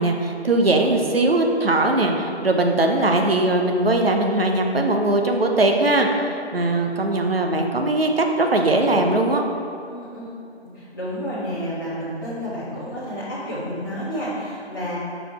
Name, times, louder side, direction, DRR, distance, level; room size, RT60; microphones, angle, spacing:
voice 1, 0.0-9.4, right 2 dB, 60° right, 3 dB, 0.7 m, -20 dB
voice 2, 9.9-10.3 10.7-15.0, equal, 20° left, -13 dB, 0.8 m, -30 dB
5.0 x 4.9 x 4.8 m, 2.6 s
figure-of-eight pair, 170°, 33 cm